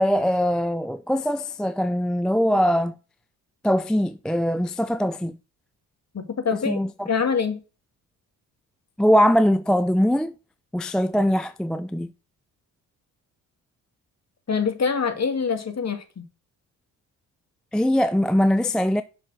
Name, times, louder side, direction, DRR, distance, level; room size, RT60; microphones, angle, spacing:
voice 1, 0.0-2.9 3.6-5.4 6.7-7.1 9.0-10.3 10.7-12.1 17.7-19.0, equal, ahead, 0.3 m, -21 dB
voice 2, 6.1-6.8 7.1-7.6 14.5-16.2, left 5 dB, 40° left, 1.8 m, -25 dB
6.6 x 4.3 x 6.2 m
hypercardioid pair, 50°, 43 cm